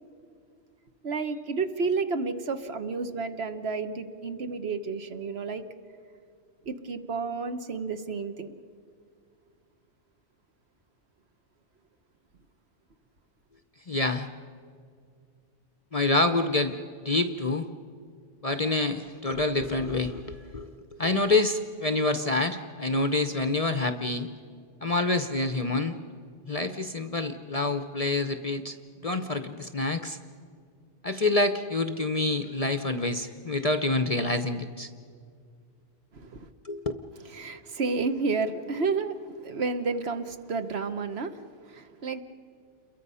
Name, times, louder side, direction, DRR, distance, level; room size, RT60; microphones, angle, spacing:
voice 1, 1.0-5.6 6.6-8.5 36.1-36.5 37.2-42.2, right 4 dB, 60° right, 8 dB, 1.2 m, -31 dB
voice 2, 13.9-14.3 15.9-17.7 18.4-20.7 21.0-24.3 24.8-26.0 26.5-30.2 31.0-34.9 36.6-36.8, left 2 dB, 35° left, 9 dB, 0.7 m, -27 dB
29.0 x 22.0 x 5.6 m, 2.2 s
omnidirectional pair, 1.3 m